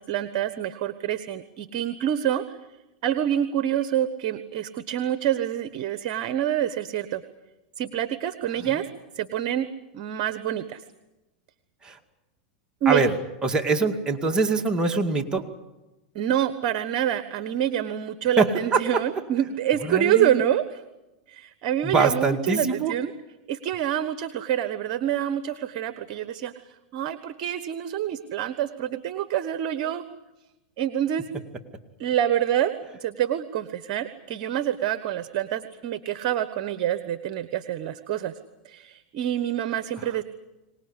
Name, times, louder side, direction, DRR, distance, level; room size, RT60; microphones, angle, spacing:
voice 1, 0.0-2.6 3.0-7.2 7.8-8.8 9.1-9.7 9.9-10.8 12.8-13.0 16.1-20.8 21.3-23.1 23.5-26.5 26.9-30.0 30.8-31.2 32.0-32.7 33.0-38.3 38.6-40.2, right 11 dB, 55° right, 12 dB, 1.2 m, -26 dB
voice 2, 13.4-15.5 18.4-19.0 19.9-20.4 21.8-22.9, right 3 dB, 20° right, 4 dB, 2.3 m, -23 dB
24.5 x 19.0 x 9.8 m, 1.0 s
hypercardioid pair, 105°, 4 cm